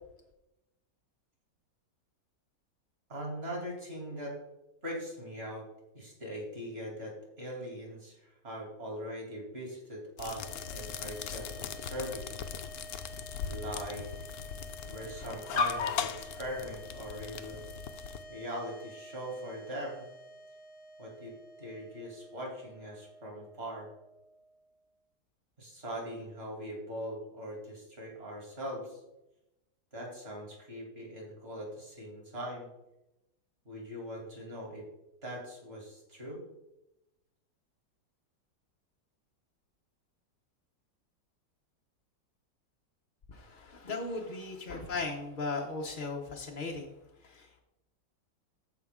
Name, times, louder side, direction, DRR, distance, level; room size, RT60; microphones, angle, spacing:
voice 1, 3.1-4.4 4.8-5.7 5.9-12.4 13.5-14.3 14.9-17.6 18.3-20.0 21.0-23.9 25.6-29.0 29.9-32.7 33.6-34.8 35.2-36.4, equal, 35° right, -2 dB, 2.8 m, -41 dB
sound 1, 10.2-18.2, left 7 dB, 70° left, 1.0 m, -38 dB
sound 2, 10.3-24.7, right 1 dB, 5° right, 0.9 m, -51 dB
voice 2, 43.3-46.9 47.2-47.6, left 3 dB, 50° left, 0 dB, 0.6 m, -37 dB
14.0 x 4.9 x 3.6 m, 0.91 s
omnidirectional pair, 1.9 m